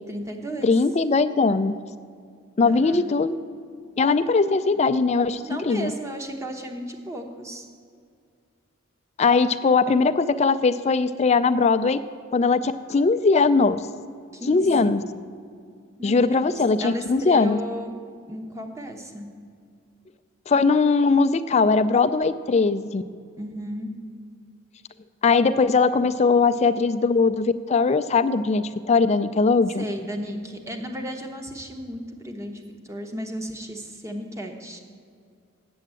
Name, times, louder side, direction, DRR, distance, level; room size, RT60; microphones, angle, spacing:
voice 1, 0.1-0.7 2.7-3.0 5.4-7.7 14.3-15.0 16.0-17.9 18.3-19.3 23.4-23.9 29.8-34.8, equal, 15° right, 4 dB, 0.9 m, -34 dB
voice 2, 0.6-1.8 2.6-3.4 4.0-5.9 9.2-12.0 12.3-13.9 14.5-15.0 16.0-17.6 20.5-23.0 25.2-29.8, left 4 dB, 30° left, 12 dB, 0.3 m, -20 dB
8.5 x 7.8 x 7.5 m, 2.3 s
head